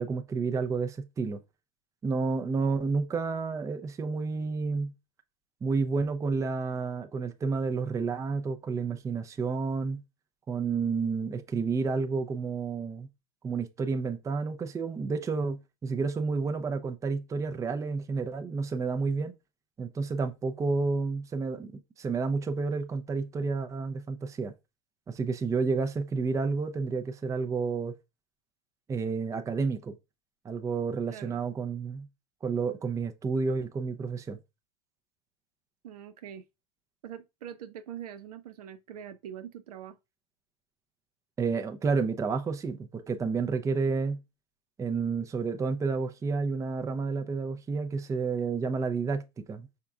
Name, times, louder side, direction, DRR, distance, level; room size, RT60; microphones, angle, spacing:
voice 1, 0.0-1.4 2.0-4.9 5.6-10.0 10.5-13.1 13.4-19.3 19.8-21.7 22.0-24.5 25.1-27.9 28.9-30.0 30.4-32.1 32.4-34.4 41.4-44.2 44.8-49.7, right 4 dB, 15° right, 0.5 m, -30 dB
voice 2, 31.1-31.4 35.8-36.4 37.0-40.0, right 9 dB, 70° right, 0.6 m, -43 dB
5.7 x 3.6 x 2.3 m
hypercardioid pair, 95°, 20 cm